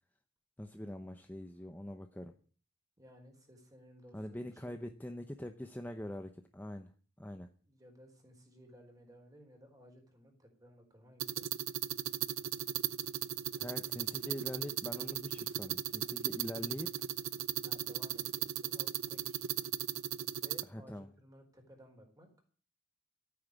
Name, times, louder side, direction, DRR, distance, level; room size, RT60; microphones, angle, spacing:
voice 1, 0.6-2.3 4.1-7.5 13.6-16.9 20.7-21.1, left 1 dB, 10° left, 6 dB, 0.8 m, -44 dB
voice 2, 3.0-4.7 7.7-11.5 17.6-19.5 20.3-22.3, equal, 20° right, 3 dB, 4.3 m, -58 dB
sound 1, 11.2-20.6, right 11 dB, 90° right, 0.6 m, -37 dB
13.5 x 9.2 x 8.2 m, 0.43 s
head